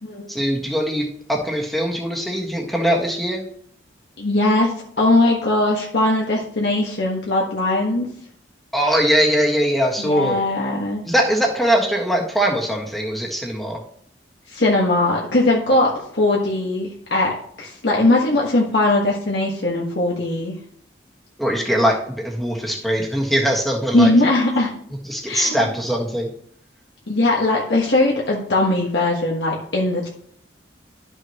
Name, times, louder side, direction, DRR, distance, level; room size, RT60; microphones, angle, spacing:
voice 1, 0.3-3.5 8.7-10.4 11.0-13.8 21.4-24.1 25.1-26.3, equal, ahead, 0 dB, 1.5 m, -21 dB
voice 2, 4.2-8.1 10.0-11.0 14.5-20.5 23.9-24.7 25.2-25.7 27.1-30.1, left 2 dB, 70° left, -3 dB, 1.5 m, -20 dB
12.0 x 6.3 x 3.0 m, 0.65 s
head